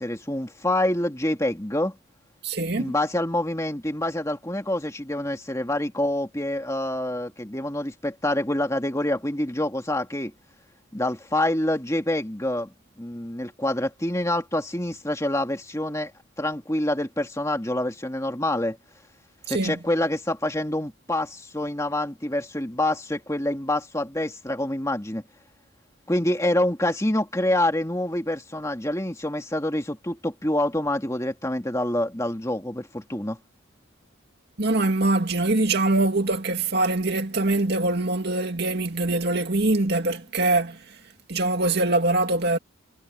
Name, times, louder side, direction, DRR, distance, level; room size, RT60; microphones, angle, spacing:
voice 1, 0.0-2.0 2.8-10.3 10.9-16.1 16.4-18.8 19.5-25.2 26.1-33.4, left 1 dB, 15° left, 2.3 m, -26 dB
voice 2, 2.4-2.9 19.5-19.8 34.6-40.9 41.3-42.6, right 2 dB, 50° right, 2.4 m, -23 dB
head